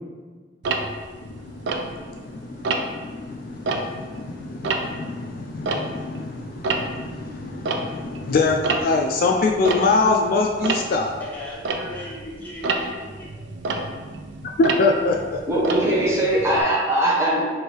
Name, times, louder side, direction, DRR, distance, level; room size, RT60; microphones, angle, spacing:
Tick-tock, 0.6-2.3 2.6-3.1 3.5-6.2 6.5-16.6, right 3 dB, 90° right, 0.4 m, -29 dB
voice 1, 1.2-11.1 14.4-15.4, left 3 dB, 55° left, 2 dB, 0.3 m, -24 dB
voice 2, 11.2-13.3, left 1 dB, 10° left, -9 dB, 1.2 m, -37 dB
voice 3, 15.5-17.4, right 1 dB, 15° right, -6 dB, 0.7 m, -20 dB
3.2 x 2.6 x 4.4 m, 1.5 s
head